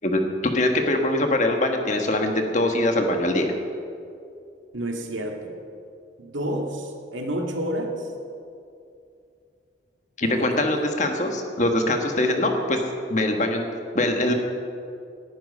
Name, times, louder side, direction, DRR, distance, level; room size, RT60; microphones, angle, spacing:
voice 1, 0.0-3.5 10.2-12.8 13.1-13.7 13.9-14.3, left 1 dB, 40° left, 4 dB, 1.5 m, -23 dB
voice 2, 4.7-5.5 6.2-8.1 10.2-10.6, right 1 dB, 80° right, 2 dB, 1.9 m, -30 dB
19.0 x 10.5 x 5.5 m, 2.5 s
head